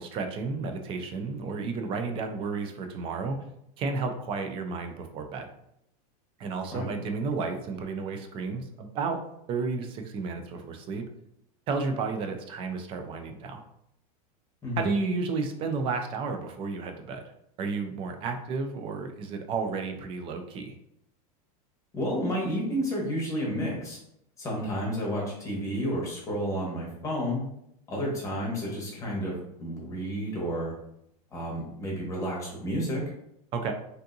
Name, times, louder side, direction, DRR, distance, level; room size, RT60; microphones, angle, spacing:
voice 1, 0.0-3.4 3.8-5.5 6.4-9.2 9.5-11.1 11.7-13.6 14.8-17.2 17.6-20.7 33.5-33.7, right 4 dB, 30° right, 5 dB, 0.4 m, -32 dB
voice 2, 21.9-24.0 24.4-27.4 27.9-30.7 31.3-33.0, equal, 15° left, -3 dB, 1.0 m, -31 dB
3.4 x 2.6 x 2.6 m, 0.78 s
supercardioid pair, 150°, 19 cm